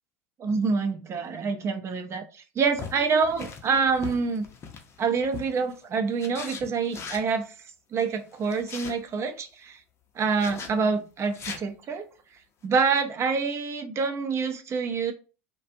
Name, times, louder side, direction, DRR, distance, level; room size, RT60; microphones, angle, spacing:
voice 1, 0.4-4.4 5.0-7.5 7.9-9.8 10.2-12.0 12.6-15.1, right 5 dB, 40° right, 6 dB, 0.6 m, -26 dB
sound 1, 2.7-5.7 6.2-7.3 8.3-8.9 10.4-10.7 11.2-11.6, left 6 dB, 40° left, 0.6 m, -40 dB
2.4 x 2.3 x 2.6 m, 0.33 s
hypercardioid pair, 80°, 7 cm